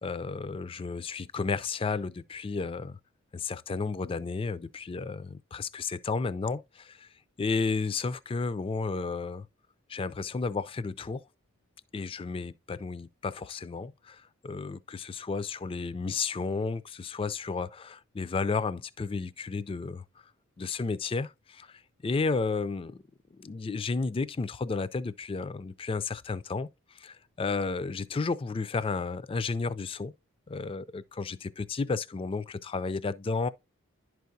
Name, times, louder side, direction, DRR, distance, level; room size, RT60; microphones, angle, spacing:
voice 1, 0.0-3.0 3.3-7.1 7.4-9.5 9.9-11.2 11.9-20.0 20.6-23.0 23.4-26.7 26.9-30.1 30.5-33.5, left 4 dB, 25° left, 0.3 m, -32 dB
11.0 x 4.6 x 2.7 m
head